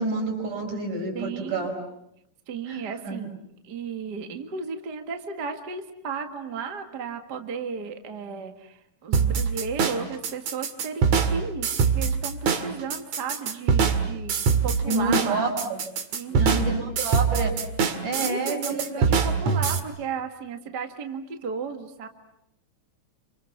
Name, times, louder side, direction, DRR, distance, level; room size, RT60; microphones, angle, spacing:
voice 1, 0.0-1.7 2.7-3.3 14.9-15.8 16.3-17.6 18.0-19.1, right 2 dB, 80° right, 3 dB, 7.0 m, -28 dB
voice 2, 1.1-1.7 2.5-3.3 3.6-14.3 14.6-15.5 16.1-16.7 18.2-22.1, right 5 dB, 40° right, 6 dB, 2.0 m, -34 dB
sound 1, 9.1-19.8, right 6 dB, 60° right, 3.0 m, -23 dB
29.5 x 26.5 x 7.3 m, 0.79 s
omnidirectional pair, 3.6 m